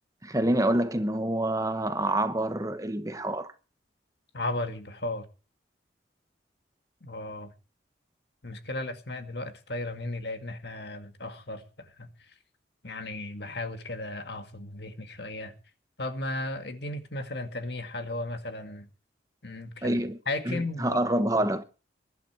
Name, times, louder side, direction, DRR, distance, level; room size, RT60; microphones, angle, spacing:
voice 1, 0.2-3.5 19.8-20.2 20.5-21.6, right 1 dB, 20° right, 1.1 m, -27 dB
voice 2, 4.3-5.3 7.0-7.5 8.4-12.1 12.8-15.5 16.0-18.9 19.4-20.0 20.3-21.0 21.4-21.5, left 2 dB, 60° left, 2.0 m, -35 dB
21.5 x 11.5 x 4.6 m
head